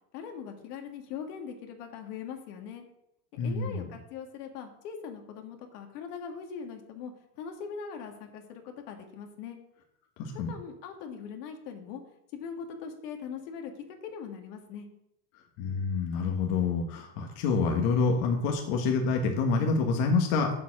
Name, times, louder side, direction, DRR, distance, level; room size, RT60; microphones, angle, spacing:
voice 1, 0.1-2.9 3.4-9.6 10.3-12.0 12.3-14.9, left 6 dB, 75° left, 4 dB, 2.1 m, -41 dB
voice 2, 3.4-3.9 10.2-10.5 15.6-20.5, left 4 dB, 55° left, 2 dB, 1.6 m, -27 dB
7.4 x 6.7 x 7.3 m, 0.78 s
supercardioid pair, 165°, 46 cm